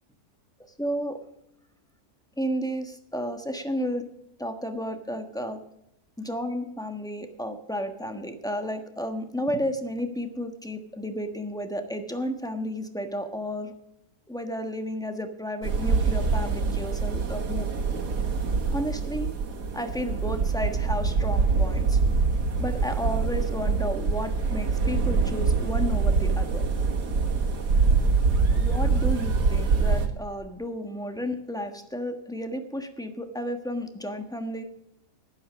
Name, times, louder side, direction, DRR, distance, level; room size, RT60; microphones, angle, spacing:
voice 1, 0.8-1.2 2.4-4.1 4.4-5.6 6.2-13.7 14.3-18.0 18.7-19.3 19.7-22.0 22.6-26.6 28.5-34.6, equal, 5° left, 6 dB, 1.1 m, -32 dB
sound 1, 15.6-30.1, right 4 dB, 90° right, 2.2 m, -24 dB
11.5 x 11.0 x 6.2 m, 0.79 s
omnidirectional pair, 1.7 m